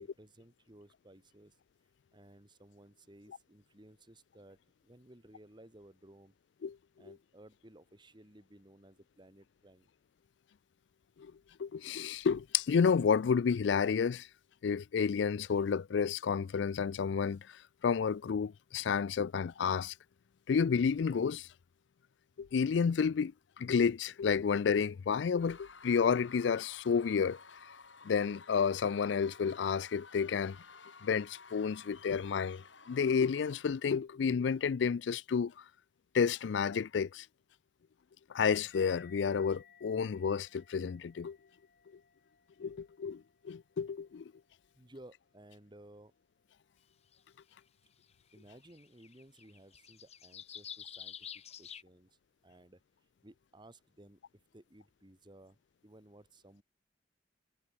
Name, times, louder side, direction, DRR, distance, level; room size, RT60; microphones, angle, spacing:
voice 1, 0.0-1.6 2.1-4.6 4.8-6.3 7.0-9.9 44.8-46.1 48.3-52.2 52.4-52.8 53.2-56.6, right 1 dB, 25° right, 2.0 m, -58 dB
voice 2, 11.6-14.3 14.6-17.5 17.8-19.9 20.5-21.5 22.4-23.3 23.6-27.4 28.0-30.6 31.0-35.5 36.1-37.3 38.3-41.4 42.6-44.2, left 6 dB, 70° left, 0.4 m, -30 dB
Screaming / Cheering / Crowd, 25.4-33.9, left 4 dB, 90° left, 5.3 m, -54 dB
sound 1, 38.7-45.6, left 8 dB, 55° left, 3.3 m, -62 dB
sound 2, 47.1-47.2 48.3-48.4 48.6-51.8, left 9 dB, 35° left, 0.9 m, -48 dB
head